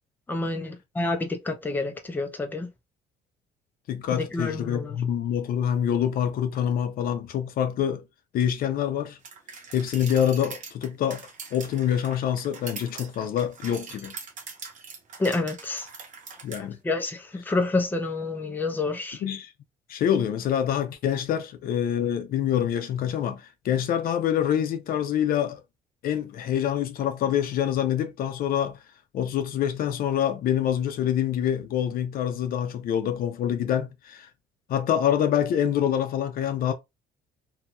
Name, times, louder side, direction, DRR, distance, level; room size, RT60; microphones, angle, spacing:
voice 1, 0.3-2.7 4.1-5.0 15.2-15.9 16.8-19.2, left 3 dB, 10° left, 0.6 m, -28 dB
voice 2, 3.9-8.1 8.3-9.2 9.7-14.1 16.4-16.8 19.2-19.5 19.9-25.6 26.0-28.8 29.1-34.3 34.7-36.7, left 9 dB, 60° left, 0.5 m, -26 dB
sound 1, 9.2-16.6, right 5 dB, 50° right, 0.8 m, -42 dB
2.8 x 2.7 x 2.3 m
cardioid pair, 110°, 17 cm